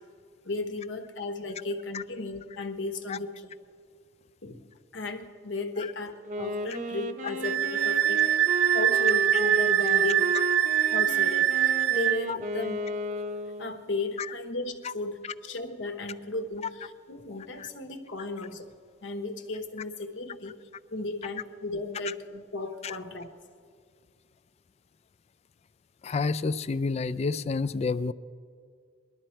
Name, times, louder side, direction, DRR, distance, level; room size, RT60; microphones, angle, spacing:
voice 1, 0.4-3.5 4.4-4.6 4.9-8.3 8.7-10.3 10.9-12.8 13.6-18.7 19.0-20.6 20.9-23.3, left 2 dB, 75° left, 6 dB, 1.1 m, -35 dB
Wind instrument woodwind instrument, 6.3-13.9, equal, 45° right, 0.8 m, -34 dB
Wind instrument woodwind instrument 2, 7.4-12.2, right 11 dB, 80° right, 0.4 m, -24 dB
voice 2, 26.0-28.1, left 4 dB, 35° left, 16 dB, 0.3 m, -29 dB
20.0 x 12.0 x 4.5 m, 2.1 s
head